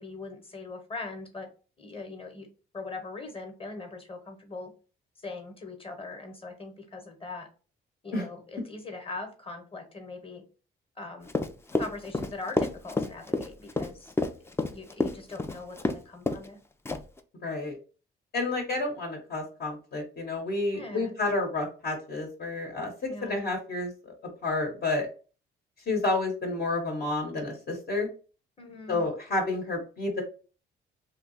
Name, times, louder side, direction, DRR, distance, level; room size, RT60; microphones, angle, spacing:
voice 1, 0.0-1.5 1.8-2.5 2.7-4.7 5.2-7.5 8.0-10.4 11.0-11.3 11.8-14.1 14.7-16.6 20.7-21.1 23.1-23.4 28.6-29.0, left 3 dB, 30° left, 5 dB, 1.1 m, -41 dB
Run, 11.3-16.0 16.3-16.5 16.8-17.2, left 2 dB, 10° left, 0.4 m, -28 dB
voice 2, 17.4-17.7 18.3-24.1 24.4-25.1 25.9-28.1 28.9-30.2, left 2 dB, 55° left, 1 dB, 1.1 m, -30 dB
2.8 x 2.3 x 3.9 m, 0.36 s
cardioid pair, 90°, 20 cm